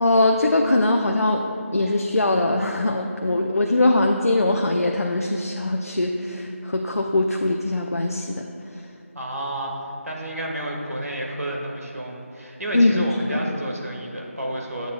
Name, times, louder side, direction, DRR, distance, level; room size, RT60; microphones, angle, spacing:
voice 1, 0.0-8.8 12.7-13.4, left 2 dB, 80° left, 2 dB, 0.5 m, -22 dB
voice 2, 9.1-14.9, right 1 dB, 90° right, -1 dB, 1.4 m, -30 dB
9.1 x 8.0 x 2.2 m, 2.5 s
figure-of-eight pair, 160°, 8 cm